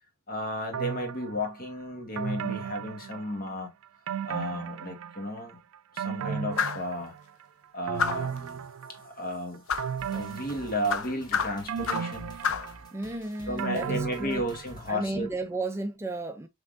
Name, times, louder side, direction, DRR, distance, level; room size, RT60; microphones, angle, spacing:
voice 1, 0.3-3.7 4.3-5.6 5.9-7.1 7.7-8.6 8.9-9.6 10.1-12.3 13.5-15.3, equal, 45° left, 1.4 m, -33 dB
sound 1, 0.7-1.5 2.2-3.6 4.1-5.4 5.7-7.4 7.9-9.2 9.8-11.2 11.7-14.9 15.3-15.4, right 7 dB, 80° right, 0.4 m, -35 dB
sound 2, 6.6-6.9 8.0-8.4 9.7-9.9 10.9-12.2 12.4-12.7, left 6 dB, 80° left, 0.6 m, -29 dB
sound 3, 10.0-14.9, equal, 20° left, 1.1 m, -49 dB
voice 2, 12.9-14.4 14.9-16.5, right 2 dB, 10° right, 0.4 m, -33 dB
5.4 x 3.5 x 2.4 m
head